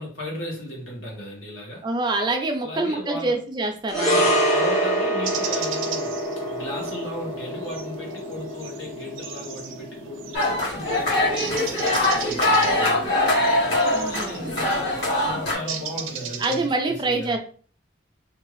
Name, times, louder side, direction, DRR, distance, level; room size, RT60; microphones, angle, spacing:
voice 1, 0.0-1.8 2.6-3.4 4.1-6.2 6.5-13.3 14.0-17.3, left 1 dB, 75° left, 1.2 m, -36 dB
voice 2, 1.8-4.4 13.9-14.5 16.4-17.4, right 2 dB, 25° right, 0.4 m, -26 dB
sound 1, 3.9-12.4 12.6-12.8, right 1 dB, 35° left, 0.8 m, -27 dB
sound 2, 5.2-16.7, right 7 dB, 85° right, 0.4 m, -37 dB
sound 3, 10.3-15.5, left 1 dB, 55° left, 1.4 m, -22 dB
2.6 x 2.4 x 3.0 m
head